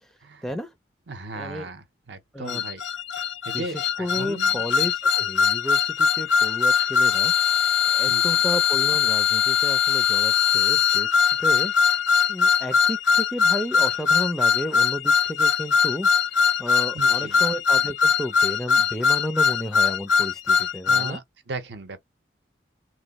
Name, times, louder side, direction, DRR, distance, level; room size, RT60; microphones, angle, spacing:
voice 1, 0.4-0.7 1.3-1.7 2.3-2.6 3.5-7.3 7.9-11.1 11.4-11.7 12.3-16.1 16.6-21.2, equal, ahead, 0.4 m, -32 dB
voice 2, 1.1-2.8 3.5-4.6 8.1-8.2 16.9-17.4 20.8-22.0, right 3 dB, 60° right, 0.7 m, -36 dB
sound 1, 2.5-21.1, left 6 dB, 70° left, 0.4 m, -21 dB
3.0 x 2.2 x 2.9 m
head